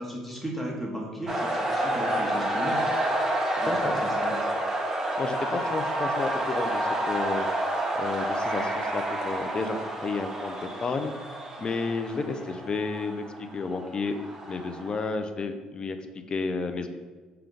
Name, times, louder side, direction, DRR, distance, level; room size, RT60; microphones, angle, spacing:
voice 1, 0.0-2.9 3.6-4.5, equal, ahead, -3 dB, 1.0 m, -35 dB
sound 1, 1.3-15.1, right 1 dB, 25° right, 0.7 m, -29 dB
voice 2, 5.2-7.5 8.0-11.1 11.6-13.2 13.5-14.2 14.5-16.9, left 4 dB, 35° left, 8 dB, 0.4 m, -31 dB
5.0 x 2.2 x 3.7 m, 1.4 s
hypercardioid pair, 65°, 2 cm